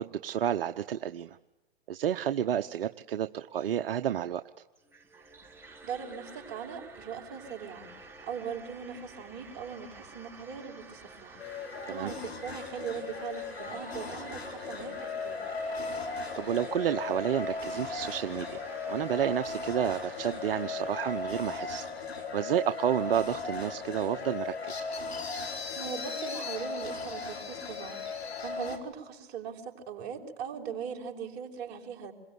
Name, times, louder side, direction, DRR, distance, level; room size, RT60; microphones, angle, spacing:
voice 1, 0.0-1.4 1.9-4.4 11.8-12.1 16.4-21.9 22.3-24.8, right 10 dB, 65° right, 9 dB, 1.0 m, -30 dB
sound 1, 4.8-21.7, right 3 dB, 5° right, 4.2 m, -50 dB
voice 2, 5.8-7.9 8.2-15.4 25.7-28.0 28.4-32.1, right 7 dB, 35° right, 2 dB, 5.8 m, -40 dB
sound 2, 11.4-28.8, left 4 dB, 85° left, 4.8 m, -37 dB
27.5 x 22.5 x 9.6 m, 0.98 s
hypercardioid pair, 120°, 31 cm